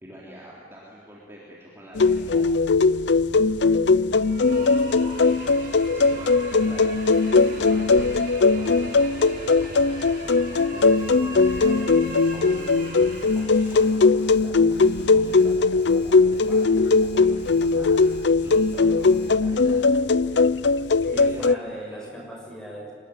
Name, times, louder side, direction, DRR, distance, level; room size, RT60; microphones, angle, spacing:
voice 1, 0.0-2.5 5.0-5.3 5.6-19.8 21.1-22.1, equal, 15° right, -5 dB, 3.8 m, -45 dB
sound 1, 2.0-21.6, left 4 dB, 90° left, 0.6 m, -20 dB
sound 2, 4.1-14.0, right 2 dB, 50° right, 7.7 m, -40 dB
voice 2, 4.4-5.5 21.0-22.9, equal, 5° left, -2 dB, 6.5 m, -39 dB
Alarm, 11.0-19.3, right 1 dB, 35° right, 4.5 m, -53 dB
25.0 x 20.5 x 9.9 m, 2.4 s
head